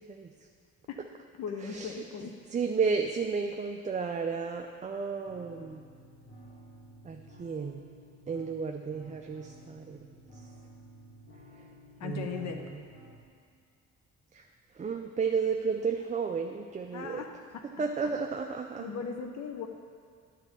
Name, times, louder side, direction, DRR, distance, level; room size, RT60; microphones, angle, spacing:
voice 1, 1.3-2.3 12.0-12.6 16.9-17.3 17.5-17.6 18.8-19.7, left 6 dB, 65° left, 4 dB, 0.7 m, -38 dB
voice 2, 2.5-5.8 7.0-7.8 8.3-10.1 12.0-12.8 14.3-14.4 14.8-17.2 17.8-18.8, right 5 dB, 25° right, 3 dB, 0.4 m, -32 dB
sound 1, 5.2-13.2, equal, 45° left, 2.1 m, -53 dB
9.8 x 4.1 x 6.8 m, 2.1 s
cardioid pair, 90°, 30 cm